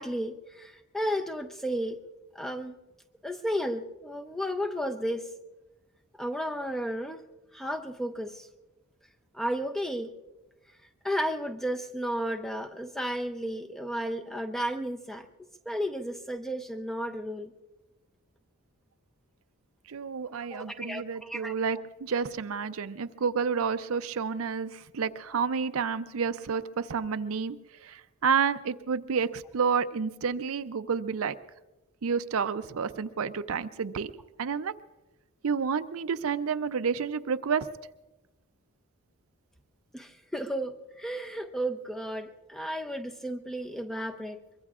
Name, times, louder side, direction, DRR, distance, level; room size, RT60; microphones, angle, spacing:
voice 1, 0.0-2.0 2.3-2.7 3.2-5.3 6.1-7.2 7.5-8.5 9.3-10.1 11.0-15.3 15.7-17.5 20.3-21.5 39.9-44.4, equal, ahead, 7 dB, 0.5 m, -33 dB
voice 2, 19.9-27.6 27.8-31.3 32.0-34.1 34.4-34.7 35.4-37.7, right 6 dB, 70° right, 12 dB, 0.5 m, -30 dB
23.0 x 23.0 x 2.4 m, 1.1 s
head